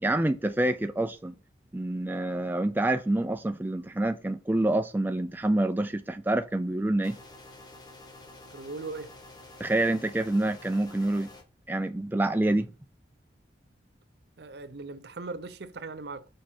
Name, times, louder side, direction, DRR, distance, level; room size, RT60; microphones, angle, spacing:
voice 1, 0.0-1.3 1.7-7.2 9.6-11.3 11.7-12.7, right 1 dB, 10° right, 0.3 m, -27 dB
sound 1, 7.0-11.4, left 2 dB, 20° left, 1.2 m, -49 dB
voice 2, 8.5-9.1 14.4-16.3, right 3 dB, 60° right, 0.6 m, -39 dB
6.4 x 5.2 x 4.4 m
head